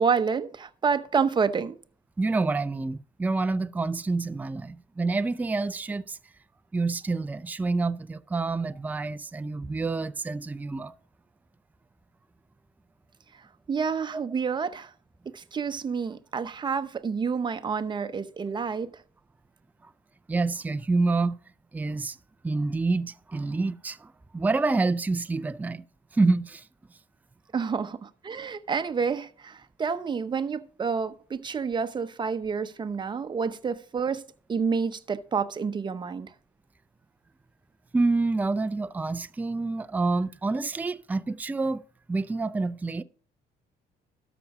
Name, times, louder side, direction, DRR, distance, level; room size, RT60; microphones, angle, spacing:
voice 1, 0.0-1.8 13.7-14.9 15.3-18.9 27.5-34.2 34.5-36.3, right 5 dB, 25° right, 0.8 m, -29 dB
voice 2, 2.2-6.2 6.7-10.9 20.3-21.4 21.7-22.2 22.4-25.8 26.1-26.6 37.9-41.8 42.1-43.0, right 3 dB, 10° right, 0.4 m, -27 dB
12.5 x 6.0 x 4.8 m
cardioid pair, 110°, 17 cm